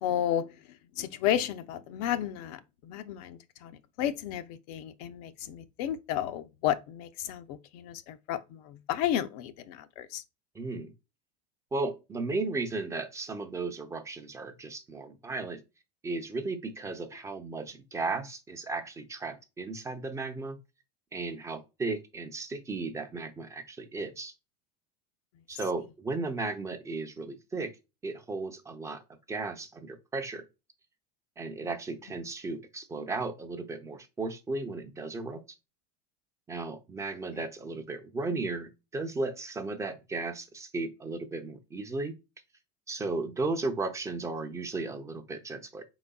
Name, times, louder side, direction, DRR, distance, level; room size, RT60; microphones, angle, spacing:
voice 1, 0.0-10.2 31.6-31.7 37.3-37.4, left 11 dB, 65° left, 0.6 m, -33 dB
voice 2, 10.6-10.9 11.7-15.6 16.0-20.6 21.1-24.3 25.5-27.7 28.0-29.0 29.3-30.4 31.4-35.4 36.5-42.1 42.9-45.8, right 3 dB, 15° right, 0.5 m, -35 dB
4.5 x 3.9 x 2.2 m
supercardioid pair, 140°, 21 cm